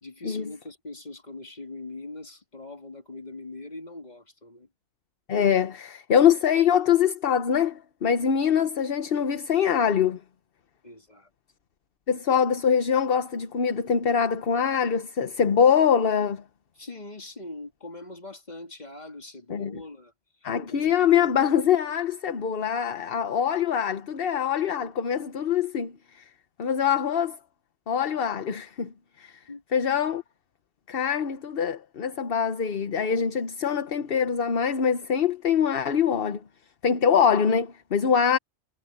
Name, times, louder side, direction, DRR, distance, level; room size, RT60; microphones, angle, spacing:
voice 1, 0.0-4.7 10.8-11.3 16.8-20.1 20.4-21.3 29.5-29.6, left 2 dB, 35° left, 2.8 m, -42 dB
voice 2, 5.3-10.2 12.1-16.4 19.5-19.8 20.4-26.2 26.6-27.4 27.9-29.3 29.7-30.2 30.9-36.4 36.8-38.4, left 7 dB, 50° left, 1.1 m, -24 dB
omnidirectional pair, 1.3 m